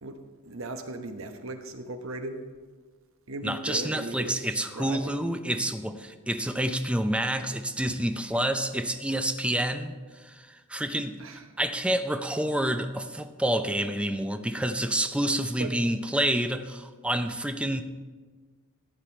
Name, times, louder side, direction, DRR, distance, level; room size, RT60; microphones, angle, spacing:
voice 1, 0.0-2.4 3.3-5.2 11.2-11.4 15.6-15.7, right 2 dB, 65° right, 7 dB, 1.0 m, -37 dB
voice 2, 3.4-17.8, right 1 dB, 5° right, 8 dB, 0.5 m, -28 dB
14.5 x 9.0 x 4.4 m, 1.4 s
head